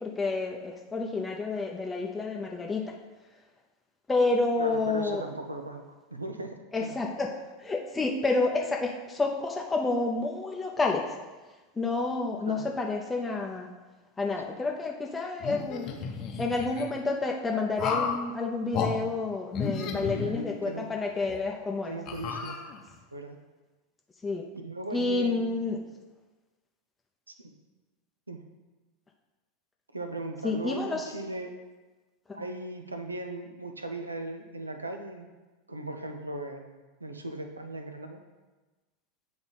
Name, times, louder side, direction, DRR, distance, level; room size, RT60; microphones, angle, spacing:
voice 1, 0.0-2.8 4.1-5.2 6.7-7.3 7.6-11.0 11.8-13.7 14.2-15.9 16.4-21.9 24.2-24.4 24.9-25.8 30.4-31.0, left 3 dB, 15° left, 0 dB, 0.7 m, -29 dB
voice 2, 4.6-5.8 6.1-6.9 12.4-12.6 19.8-20.9 21.9-22.6 23.1-23.4 24.5-25.4 27.3-27.5 28.3-28.4 29.9-31.5 32.3-35.3 35.7-38.2, right 2 dB, 85° right, 6 dB, 0.6 m, -38 dB
sound 1, 15.4-16.9 17.8-18.2 18.7-18.9 19.5-20.8 21.3-21.4 22.1-23.0, left 6 dB, 40° left, 0.8 m, -33 dB
8.3 x 3.5 x 4.1 m, 1.2 s
figure-of-eight pair, 85°, 0 cm